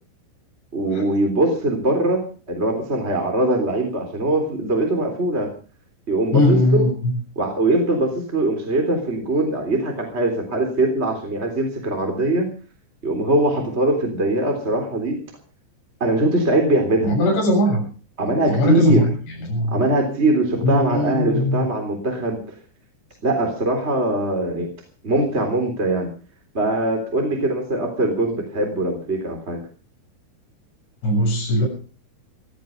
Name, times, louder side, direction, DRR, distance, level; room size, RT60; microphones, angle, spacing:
voice 1, 0.7-5.5 6.1-6.9 7.3-12.5 13.0-15.2 16.0-17.2 18.2-19.0 19.7-22.5 23.2-24.7 25.0-26.1 26.5-29.6, right 2 dB, 15° right, 3 dB, 3.1 m, -21 dB
voice 2, 6.3-7.1 17.0-17.8 18.5-19.1 19.4-19.8 20.6-21.7 31.0-31.7, left 1 dB, 65° left, -2 dB, 9.7 m, -19 dB
17.5 x 15.0 x 5.3 m, 0.39 s
omnidirectional pair, 5.5 m